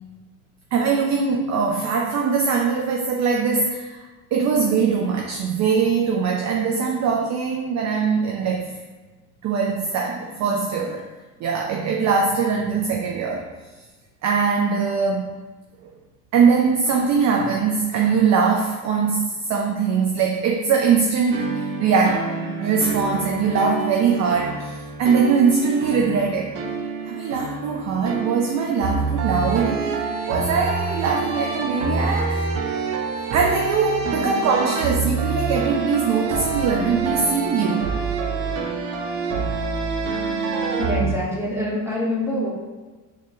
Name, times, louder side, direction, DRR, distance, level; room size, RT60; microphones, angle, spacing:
voice 1, 0.7-4.0 4.3-8.7 9.4-11.0 11.4-13.5 14.2-15.3 15.8-15.9 16.3-26.6 27.1-32.5 33.3-37.9, right 5 dB, 40° right, 1 dB, 0.4 m, -22 dB
sound 1, 21.3-41.2, right 4 dB, 85° right, 0.6 m, -27 dB
voice 2, 40.8-42.5, left 1 dB, 5° right, -5 dB, 1.2 m, -25 dB
4.3 x 2.3 x 3.0 m, 1.3 s
hypercardioid pair, 70°, 45 cm